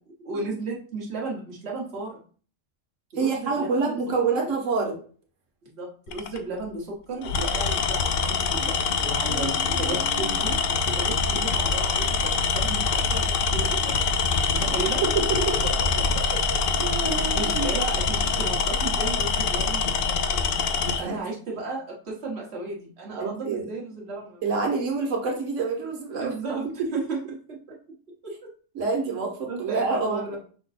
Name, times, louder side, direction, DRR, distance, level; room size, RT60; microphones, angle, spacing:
voice 1, 0.2-2.1 3.2-3.9 4.3-4.6 5.6-14.1 14.5-15.0 15.6-15.7 16.1-16.6 17.4-24.4 26.1-27.2 27.5-27.6 28.2-28.5 29.5-30.4, right 3 dB, 60° right, -3 dB, 1.5 m, -34 dB
voice 2, 3.2-5.0 9.3-10.3 15.0-15.5 16.8-17.7 20.8-21.2 23.1-23.6 24.4-26.3 28.7-30.4, right 4 dB, 90° right, 1 dB, 1.4 m, -27 dB
Tools, 6.1-6.4 7.2-21.0, left 4 dB, 60° left, 0.6 m, -24 dB
5.7 x 2.2 x 4.1 m, 0.42 s
omnidirectional pair, 1.3 m